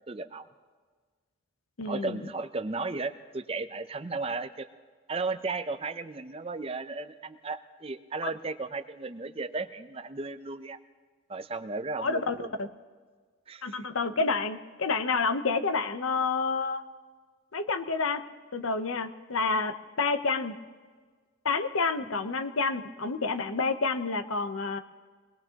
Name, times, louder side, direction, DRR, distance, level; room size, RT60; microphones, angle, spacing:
voice 1, 0.1-0.5 1.8-4.7 5.1-10.8 11.3-12.5 13.5-13.9 22.0-22.2, right 3 dB, 30° right, 11 dB, 0.5 m, -35 dB
voice 2, 1.8-2.2 12.0-12.7 13.6-16.8 17.5-18.2 18.5-20.5 21.4-24.8, left 4 dB, 90° left, 8 dB, 0.9 m, -29 dB
25.0 x 19.5 x 2.9 m, 1.5 s
head